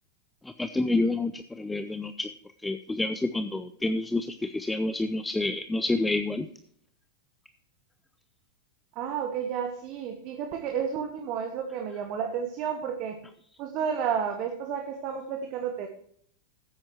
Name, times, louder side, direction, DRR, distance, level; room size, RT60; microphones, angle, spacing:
voice 1, 0.4-2.3 2.6-6.5, left 2 dB, 10° left, 10 dB, 0.6 m, -28 dB
voice 2, 8.9-13.2 13.6-15.9, right 7 dB, 40° right, 5 dB, 1.3 m, -31 dB
14.5 x 8.8 x 3.0 m, 0.64 s
figure-of-eight pair, 90°, 0 cm